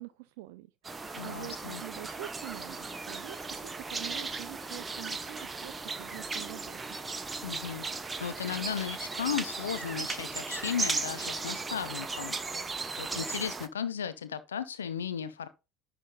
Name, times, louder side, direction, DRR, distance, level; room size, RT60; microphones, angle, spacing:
voice 1, 0.0-6.8, right 18 dB, 60° right, 0.5 m, -45 dB
sound 1, 0.8-13.7, right 4 dB, 20° right, 0.9 m, -36 dB
voice 2, 1.2-1.8 7.4-7.9 8.2-12.7 13.0-15.5, left 8 dB, 75° left, 0.8 m, -35 dB
11.0 x 3.6 x 5.2 m
figure-of-eight pair, 65°, 0 cm